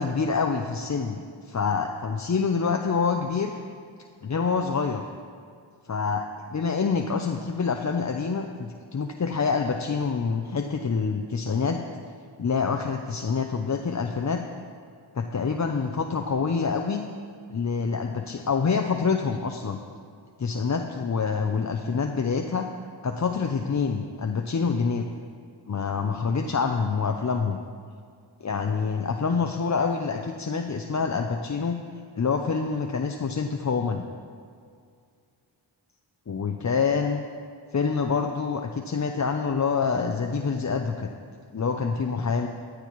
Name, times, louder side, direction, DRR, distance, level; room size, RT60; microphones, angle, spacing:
voice 1, 0.0-3.5 4.2-5.0 5.8-11.8 12.4-14.4 15.1-17.0 17.5-19.8 20.4-22.7 23.0-25.1 25.7-27.6 28.4-31.8 32.2-34.1 36.3-37.3 37.7-41.1 41.5-42.5, left 5 dB, 40° left, 4 dB, 0.6 m, -26 dB
15.0 x 11.5 x 3.1 m, 2.2 s
cardioid pair, 45°, 46 cm